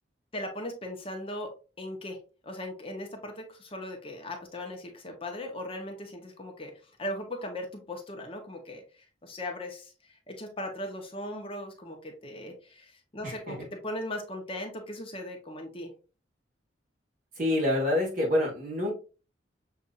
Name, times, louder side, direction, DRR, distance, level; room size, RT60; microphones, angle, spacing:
voice 1, 0.3-1.5 1.8-2.2 2.4-6.7 7.0-8.8 9.2-15.9, left 1 dB, 30° left, 3 dB, 0.8 m, -38 dB
voice 2, 13.2-13.5 17.4-18.9, left 1 dB, 45° right, -2 dB, 1.4 m, -27 dB
6.8 x 2.5 x 2.4 m, 0.33 s
head